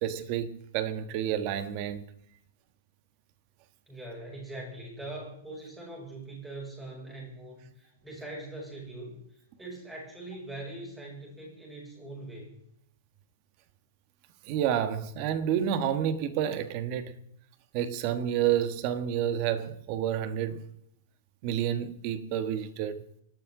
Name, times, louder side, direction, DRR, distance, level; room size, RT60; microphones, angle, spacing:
voice 1, 0.0-2.0 14.5-17.1 17.7-20.6 21.4-23.0, right 10 dB, 35° right, 1.4 m, -29 dB
voice 2, 3.9-12.6, right 2 dB, 5° right, 6.6 m, -42 dB
24.5 x 12.5 x 3.9 m
supercardioid pair, 165°, 0 cm